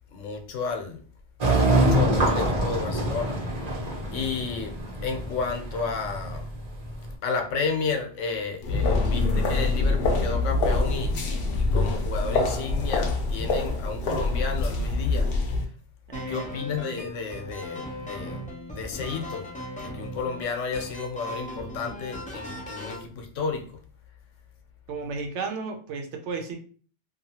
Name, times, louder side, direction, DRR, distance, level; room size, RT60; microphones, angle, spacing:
voice 1, 0.1-1.1 1.7-6.5 7.2-15.3 16.3-18.4 18.7-19.5 19.8-23.8, left 4 dB, 90° left, 1.0 m, -32 dB
sound 1, 1.4-7.1, right 1 dB, 40° right, 0.7 m, -25 dB
sound 2, 8.6-15.6, left 3 dB, 60° left, 0.7 m, -25 dB
sound 3, 16.1-23.0, left 1 dB, 15° left, 0.3 m, -38 dB
voice 2, 16.1-16.5 16.9-17.2 24.9-26.6, right 4 dB, 75° right, 0.9 m, -34 dB
2.7 x 2.3 x 2.8 m
omnidirectional pair, 1.2 m